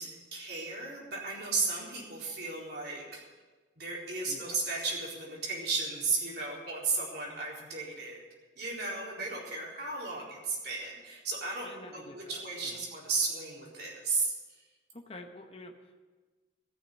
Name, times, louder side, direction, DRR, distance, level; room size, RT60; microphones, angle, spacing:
voice 1, 0.0-3.2 3.8-8.2 8.6-14.3, right 3 dB, 60° right, -4 dB, 4.1 m, -34 dB
voice 2, 4.2-4.6 11.6-12.8 14.9-16.0, left 2 dB, 30° left, 3 dB, 0.9 m, -48 dB
14.0 x 6.7 x 9.8 m, 1.3 s
head